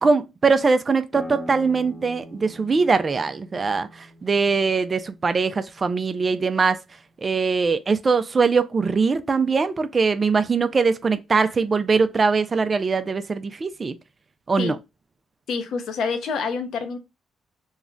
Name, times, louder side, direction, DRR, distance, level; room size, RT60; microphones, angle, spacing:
voice 1, 0.0-6.8 7.2-14.0 14.5-14.8, right 4 dB, 35° right, 0.3 m, -22 dB
sound 1, 1.1-6.5, equal, 15° left, 0.9 m, -42 dB
voice 2, 15.5-17.0, left 5 dB, 70° left, 0.6 m, -27 dB
2.3 x 2.1 x 3.7 m
cardioid pair, 90°, 0 cm